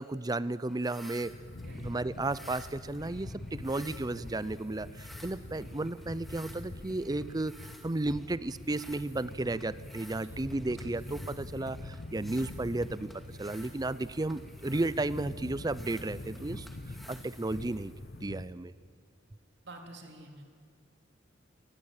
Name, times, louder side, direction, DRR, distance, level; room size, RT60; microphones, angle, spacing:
voice 1, 0.0-1.3 1.8-7.5 7.8-13.1 13.4-16.7 17.1-17.9 18.2-18.7, right 2 dB, 20° right, 18 dB, 0.5 m, -33 dB
sound 1, 0.7-18.3, equal, ahead, 2.2 m, -54 dB
sound 2, 1.2-18.5, left 2 dB, 60° left, 1.0 m, -45 dB
voice 2, 19.6-20.4, right 2 dB, 65° right, 3 dB, 3.5 m, -49 dB
24.0 x 19.5 x 9.0 m, 2.3 s
head